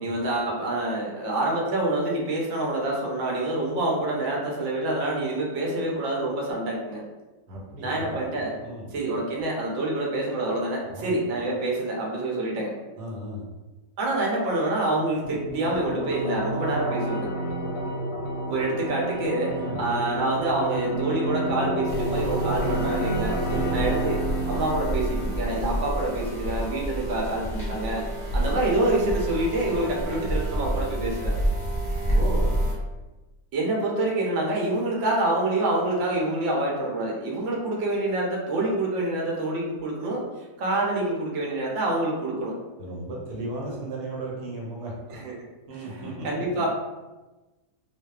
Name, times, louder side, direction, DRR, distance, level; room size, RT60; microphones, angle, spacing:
voice 1, 0.0-7.0 7.8-8.5 8.9-12.7 14.0-17.3 18.5-23.4 23.7-24.2 24.5-28.0 28.3-31.3 33.5-40.2 40.6-42.5 45.1-45.3 45.7-46.7, right 2 dB, 65° right, -2 dB, 0.8 m, -27 dB
voice 2, 7.5-8.1 8.6-8.9 10.9-11.1 13.0-13.4 19.6-19.9 23.5-24.0 32.1-32.5 42.8-44.9 45.7-46.3 46.5-46.6, right 2 dB, 90° right, -3 dB, 1.3 m, -35 dB
sound 1, 15.2-26.3, right 1 dB, 70° left, 0.9 m, -30 dB
sound 2, 21.9-32.7, right 1 dB, 45° left, 0.5 m, -29 dB
2.5 x 2.3 x 2.3 m, 1.1 s
omnidirectional pair, 1.7 m